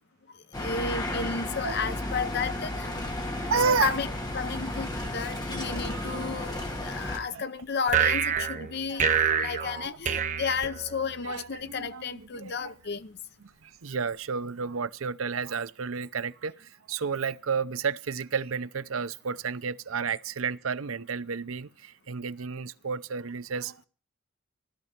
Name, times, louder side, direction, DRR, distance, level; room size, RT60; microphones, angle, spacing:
sound 1, 0.5-7.2, left 1 dB, 20° left, 2.3 m, -33 dB
voice 1, 0.6-2.9 3.4-4.1 4.3-9.1 9.4-13.2, left 5 dB, 50° left, 0.7 m, -32 dB
voice 2, 3.5-3.9 5.9-6.2 7.3-7.4 8.4-8.5 8.9-9.1 9.9-10.0 11.2-12.7 13.6-23.9, right 5 dB, 75° right, 0.6 m, -31 dB
sound 2, 7.9-11.3, right 7 dB, 35° right, 1.0 m, -27 dB
17.0 x 12.0 x 5.9 m
head